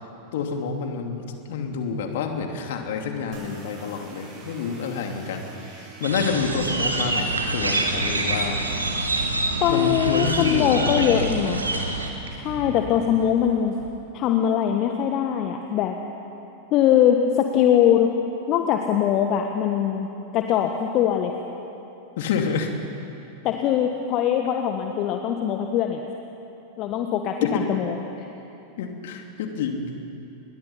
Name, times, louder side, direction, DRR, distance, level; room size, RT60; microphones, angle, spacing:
voice 1, 0.3-8.6 9.7-11.3 22.2-22.7 27.4-27.7 28.8-29.9, left 5 dB, 55° left, 4 dB, 2.8 m, -28 dB
sound 1, 3.3-8.8, right 4 dB, 40° right, 7.8 m, -45 dB
sound 2, 6.0-12.1, right 2 dB, 80° right, 2.5 m, -26 dB
sound 3, 6.2-13.9, right 3 dB, 65° right, 4.1 m, -42 dB
voice 2, 9.6-11.6 12.4-13.8 14.1-16.0 16.7-18.1 18.5-21.3 23.4-26.0 26.8-28.3, left 9 dB, 40° left, 4 dB, 1.4 m, -22 dB
29.0 x 22.0 x 5.8 m, 2.9 s
figure-of-eight pair, 90°, 0 cm